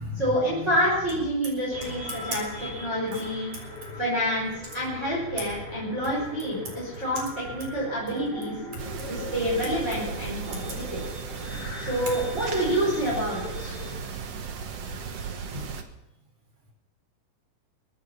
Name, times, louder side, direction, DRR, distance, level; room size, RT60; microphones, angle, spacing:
voice 1, 0.1-3.5 4.0-8.5 9.1-11.0 11.8-13.8, equal, 15° right, -7 dB, 5.0 m, -28 dB
sound 1, 1.7-14.0, left 2 dB, 20° left, 3.9 m, -40 dB
voice 2, 1.7-3.2, equal, 40° right, 1 dB, 5.0 m, -37 dB
sound 2, 8.8-15.8, right 6 dB, 90° right, 1.3 m, -36 dB
22.5 x 9.5 x 5.9 m, 0.87 s
omnidirectional pair, 5.0 m